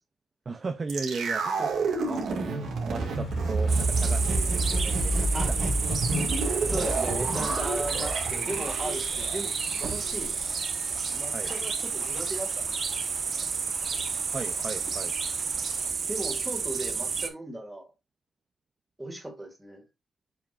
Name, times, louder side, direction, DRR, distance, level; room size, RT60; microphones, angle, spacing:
voice 1, 0.5-5.9 11.3-11.5 14.3-15.1, right 4 dB, 30° right, 0.6 m, -37 dB
sound 1, 0.9-11.0 11.3-11.4, right 2 dB, 70° right, 2.1 m, -29 dB
sound 2, 2.9-15.9, left 5 dB, 70° left, 3.5 m, -49 dB
sound 3, 3.7-17.3, right 5 dB, 45° right, 1.1 m, -31 dB
voice 2, 6.6-9.5 9.8-10.4 11.1-12.7 16.1-17.9 19.0-19.8, right 1 dB, 10° right, 2.0 m, -36 dB
7.1 x 5.2 x 2.5 m
wide cardioid pair, 140°, 0 cm